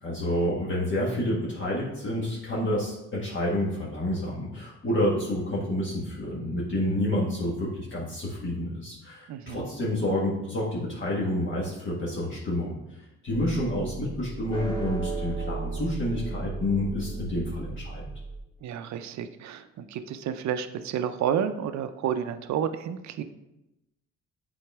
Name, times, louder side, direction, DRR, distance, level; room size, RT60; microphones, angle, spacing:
voice 1, 0.0-12.7 13.2-18.0, left 1 dB, 40° left, -6 dB, 1.5 m, -29 dB
voice 2, 9.3-9.6 18.6-23.2, right 8 dB, 65° right, 10 dB, 0.6 m, -30 dB
sound 1, 13.3-18.4, right 4 dB, 15° left, 2.3 m, -35 dB
7.8 x 3.9 x 3.5 m, 0.94 s
cardioid pair, 90°, 30 cm